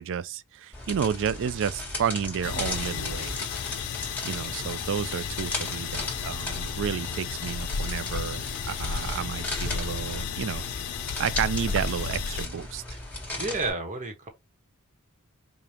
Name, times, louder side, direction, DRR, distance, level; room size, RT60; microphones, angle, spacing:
voice 1, 0.0-3.4 4.2-10.6 11.2-12.8, right 8 dB, 60° right, 0.4 m, -31 dB
sound 1, 0.7-13.7, left 2 dB, 10° left, 1.5 m, -37 dB
sound 2, 2.4-12.5, left 6 dB, 85° left, 0.5 m, -33 dB
voice 2, 13.4-14.3, right 3 dB, 35° right, 1.1 m, -30 dB
5.0 x 2.3 x 2.8 m
head